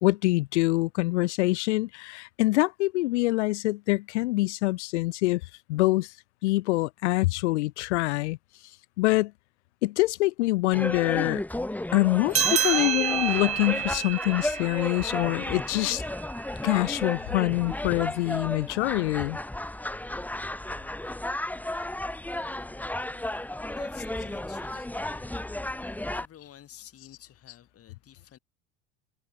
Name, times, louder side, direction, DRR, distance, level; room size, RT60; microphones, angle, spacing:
voice 1, 0.0-5.4 5.7-6.1 6.4-8.4 9.0-9.3 9.8-11.4 11.9-16.0 16.6-19.4, left 20 dB, 65° left, 1.1 m, -25 dB
sound 1, 10.7-26.3, left 1 dB, 5° left, 1.5 m, -33 dB
sound 2, 12.3-17.2, right 11 dB, 20° right, 0.4 m, -30 dB
voice 2, 23.7-25.3 26.1-28.4, left 10 dB, 40° left, 7.4 m, -51 dB
hypercardioid pair, 75°, 37 cm